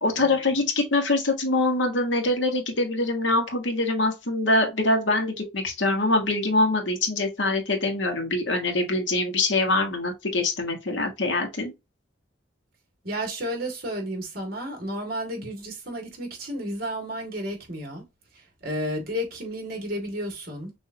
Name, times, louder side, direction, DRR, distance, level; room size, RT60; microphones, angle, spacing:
voice 1, 0.0-11.7, left 2 dB, 75° left, 1.4 m, -24 dB
voice 2, 13.0-18.0 18.6-20.7, equal, 50° right, 2.1 m, -32 dB
6.3 x 2.7 x 2.8 m
head